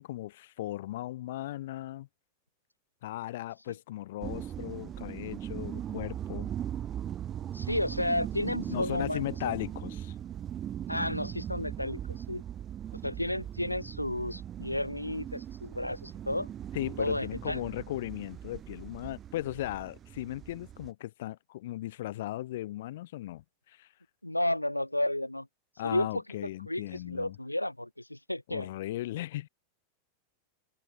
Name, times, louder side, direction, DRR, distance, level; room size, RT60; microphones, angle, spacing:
voice 1, 0.0-2.1 3.0-6.5 8.7-10.1 16.7-23.9 25.8-27.4 28.5-29.5, left 15 dB, 55° left, 0.9 m, -37 dB
sound 1, 4.2-20.9, right 10 dB, 30° right, 0.9 m, -39 dB
voice 2, 7.5-9.2 10.9-12.4 13.0-16.5 17.0-17.6 24.2-25.5 25.8-26.1 26.7-28.7, left 1 dB, 85° left, 0.5 m, -32 dB
figure-of-eight pair, 90°, 0 cm